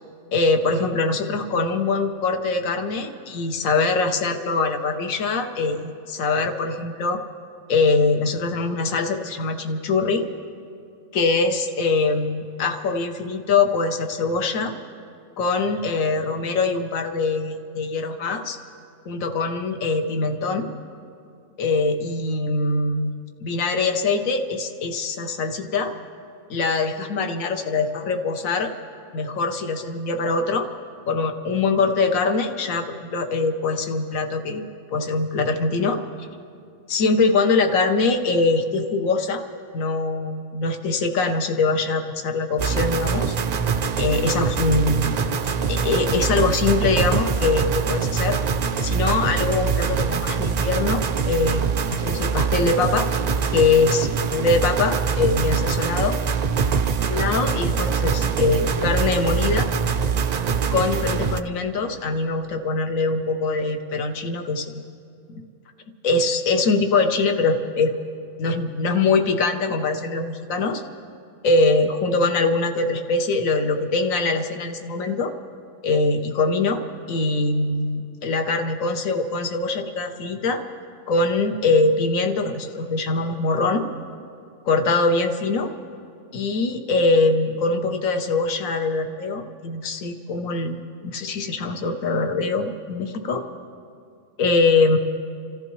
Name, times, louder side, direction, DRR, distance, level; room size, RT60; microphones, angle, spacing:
voice 1, 0.3-7.2 7.7-10.3 11.1-14.7 15.4-18.6 19.0-20.7 21.6-23.1 23.4-25.9 26.5-28.7 29.1-30.7 31.1-34.6 34.9-36.0 36.9-39.4 39.7-43.4 44.0-45.2 45.7-48.4 48.8-53.1 53.5-56.2 56.9-59.7 60.7-64.8 66.0-67.9 68.4-70.8 71.4-75.3 75.8-76.8 77.1-80.6 81.1-83.9 84.6-85.7 86.3-93.4 94.4-95.0, left 3 dB, 80° left, 6 dB, 1.3 m, -23 dB
sound 1, 42.6-61.4, right 6 dB, 65° right, 0.4 m, -23 dB
29.5 x 14.0 x 3.1 m, 2.5 s
omnidirectional pair, 1.4 m